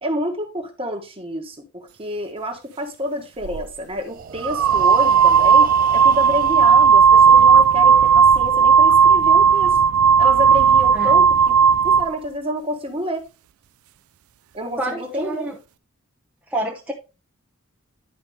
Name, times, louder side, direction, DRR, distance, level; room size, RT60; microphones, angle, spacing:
voice 1, 0.0-9.8 10.2-11.6 11.8-13.2 14.5-15.5, equal, 25° right, 1.5 m, -28 dB
sound 1, 3.4-3.6 4.4-12.1, right 6 dB, 80° right, 0.4 m, -14 dB
Breathing, 3.9-7.8, right 6 dB, 40° right, 0.6 m, -36 dB
voice 2, 10.9-11.3 14.8-15.6 16.5-16.9, right 1 dB, 5° right, 0.9 m, -28 dB
11.0 x 5.0 x 3.3 m
head